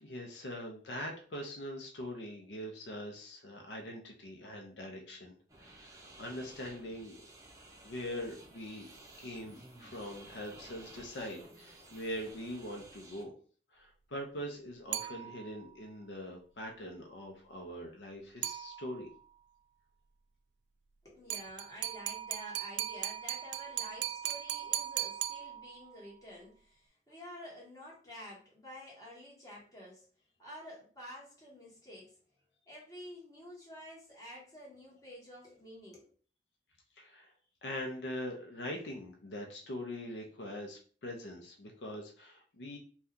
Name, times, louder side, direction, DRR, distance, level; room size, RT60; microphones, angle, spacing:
voice 1, 0.0-7.3 7.8-8.9 9.2-13.3 13.7-19.1 37.0-37.3 37.6-42.8, left 1 dB, 75° left, 2 dB, 0.6 m, -42 dB
sound 1, 5.5-13.2, right 2 dB, 20° right, 0.6 m, -55 dB
sound 2, 14.9-15.7 18.4-19.2 21.3-26.0, right 12 dB, 90° right, 0.3 m, -38 dB
voice 2, 21.0-30.1 30.4-32.2 32.7-36.1, equal, 20° left, -6 dB, 1.3 m, -50 dB
2.7 x 2.3 x 3.5 m, 0.42 s
head